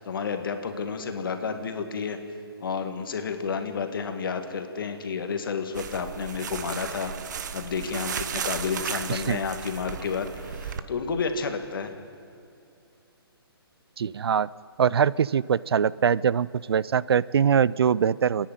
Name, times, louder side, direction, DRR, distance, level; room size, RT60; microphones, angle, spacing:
voice 1, 0.0-2.2 2.6-11.9, left 5 dB, 60° left, 7 dB, 2.0 m, -31 dB
sound 1, 5.7-10.8, right 7 dB, 45° right, 1.0 m, -35 dB
voice 2, 9.1-9.4 14.0-14.5 14.8-18.5, right 7 dB, 75° right, 21 dB, 0.5 m, -23 dB
27.5 x 10.5 x 9.2 m, 2.5 s
hypercardioid pair, 165°, 13 cm